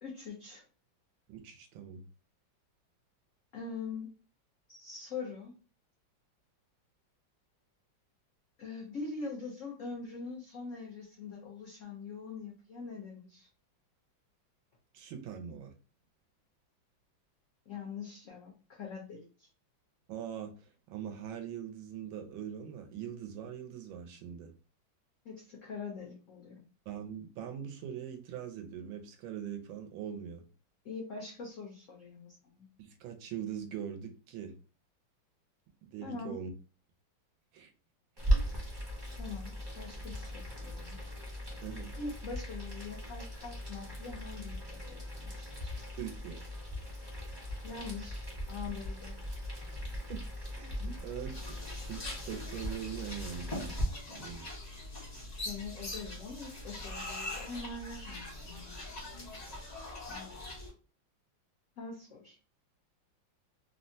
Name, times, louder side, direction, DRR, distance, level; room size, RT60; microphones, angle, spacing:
voice 1, 0.0-0.6 3.5-4.1 4.7-5.5 8.6-13.5 17.7-19.5 25.2-26.6 30.8-32.7 36.0-36.4 39.2-41.0 42.0-45.8 47.6-49.2 50.8-50.9 55.4-58.7 60.1-60.3 61.8-62.4, left 4 dB, 80° left, -1 dB, 0.7 m, -43 dB
voice 2, 1.3-2.0 14.9-15.7 20.1-24.5 26.9-30.5 32.8-34.6 35.9-36.5 37.5-37.7 41.6-41.9 46.0-46.5 50.1-53.8 54.1-54.5, right 9 dB, 85° right, 5 dB, 1.4 m, -42 dB
Boiling, 38.2-53.8, equal, 30° right, 0.5 m, -38 dB
sound 1, 51.3-60.7, left 2 dB, 40° left, 0.6 m, -43 dB
3.5 x 2.1 x 2.6 m, 0.35 s
omnidirectional pair, 2.1 m